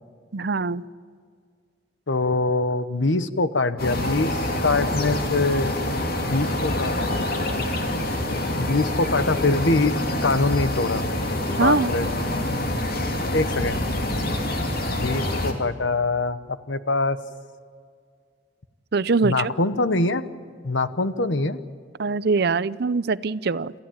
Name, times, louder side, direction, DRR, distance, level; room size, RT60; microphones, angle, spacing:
voice 1, 0.3-0.8 11.6-11.9 18.9-19.5 22.0-23.7, right 4 dB, 60° right, 17 dB, 0.6 m, -23 dB
voice 2, 2.1-6.0 6.3-7.3 8.5-11.0 11.5-12.1 13.3-13.8 15.0-16.4 16.7-17.2 19.2-20.2 20.6-21.6, left 3 dB, 90° left, 13 dB, 1.1 m, -24 dB
sound 1, 3.8-15.5, left 1 dB, 55° left, 2.9 m, -26 dB
27.5 x 15.0 x 8.9 m, 2.1 s
head